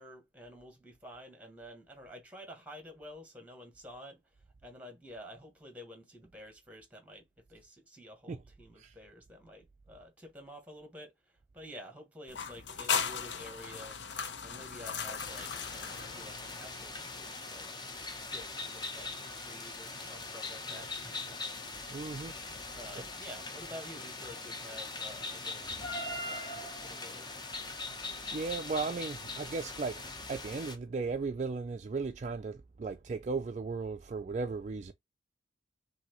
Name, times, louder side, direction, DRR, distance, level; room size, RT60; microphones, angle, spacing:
voice 1, 0.0-17.9 18.3-19.1 19.4-21.5 22.1-27.3, equal, 10° right, 1.5 m, -50 dB
sound 1, 12.3-16.9, left 6 dB, 65° left, 0.7 m, -37 dB
sound 2, 15.2-30.8, left 3 dB, 20° left, 0.7 m, -41 dB
voice 2, 21.9-22.4 22.7-23.0 28.3-34.9, right 4 dB, 35° right, 0.3 m, -36 dB
5.7 x 2.7 x 2.9 m
head